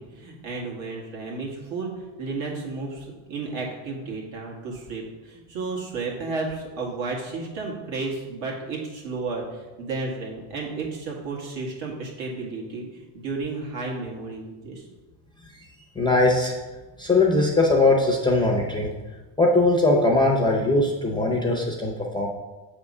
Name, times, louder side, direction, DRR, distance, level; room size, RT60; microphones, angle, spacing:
voice 1, 0.0-14.9, right 3 dB, 70° right, -2 dB, 1.9 m, -33 dB
voice 2, 16.0-16.5 17.0-18.9 19.4-22.3, left 2 dB, 10° left, -2 dB, 0.5 m, -20 dB
7.3 x 3.6 x 5.3 m, 1.2 s
cardioid pair, 155°, 48 cm